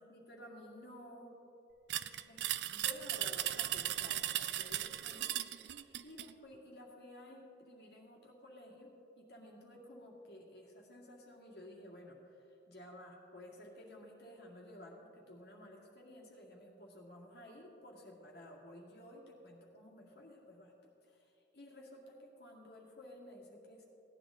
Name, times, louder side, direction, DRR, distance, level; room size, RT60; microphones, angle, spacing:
voice 1, 0.0-1.4 2.0-20.7 21.1-23.8, left 1 dB, 60° left, -3 dB, 2.1 m, -54 dB
sound 1, 1.9-6.3, right 13 dB, 65° right, 0.4 m, -37 dB
16.5 x 10.0 x 3.8 m, 2.9 s
head